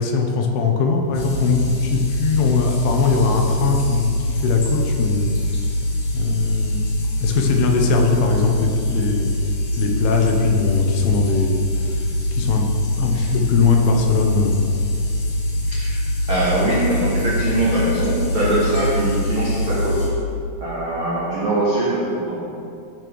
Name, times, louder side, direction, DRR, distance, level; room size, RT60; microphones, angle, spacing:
voice 1, 0.0-5.3 6.1-6.8 7.2-9.3 9.8-12.0 12.3-12.6 13.0-14.7, left 5 dB, 80° left, 2 dB, 2.8 m, -20 dB
sound 1, 1.1-20.1, left 1 dB, 60° left, 2.6 m, -23 dB
voice 2, 15.6-16.0 16.3-20.1 20.6-22.4, right 1 dB, 85° right, -7 dB, 1.1 m, -22 dB
15.0 x 6.9 x 3.1 m, 2.5 s
omnidirectional pair, 4.8 m